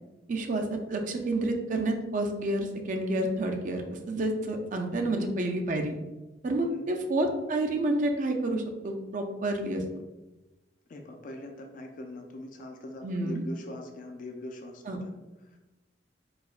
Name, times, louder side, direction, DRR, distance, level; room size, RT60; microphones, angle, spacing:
voice 1, 0.3-6.0 6.4-9.8 13.0-13.4 14.9-15.0, right 1 dB, 45° right, 4 dB, 0.4 m, -29 dB
voice 2, 6.6-7.0 10.9-15.1 15.4-15.6, left 1 dB, 50° left, 3 dB, 0.3 m, -43 dB
4.7 x 2.1 x 2.3 m, 1.1 s
head